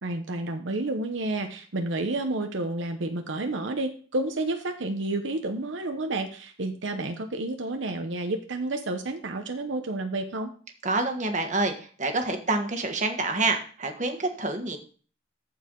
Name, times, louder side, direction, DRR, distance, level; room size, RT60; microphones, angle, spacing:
voice 1, 0.0-10.5, right 2 dB, 80° right, 5 dB, 0.9 m, -30 dB
voice 2, 10.8-14.8, right 2 dB, 40° right, 5 dB, 1.4 m, -27 dB
14.5 x 4.8 x 3.8 m, 0.40 s
head